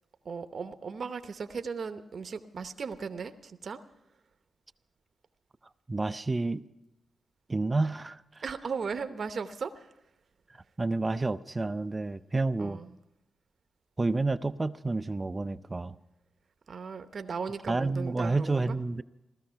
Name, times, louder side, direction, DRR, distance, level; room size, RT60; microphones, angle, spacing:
voice 1, 0.2-3.8 8.4-9.9 12.6-12.9 16.7-18.8, right 5 dB, 60° right, 9 dB, 0.8 m, -37 dB
voice 2, 5.9-6.6 7.5-8.4 10.5-12.8 14.0-16.0 17.7-19.0, right 3 dB, 30° right, 13 dB, 0.5 m, -30 dB
17.0 x 13.5 x 5.7 m, 0.93 s
cardioid pair, 70°, 0 cm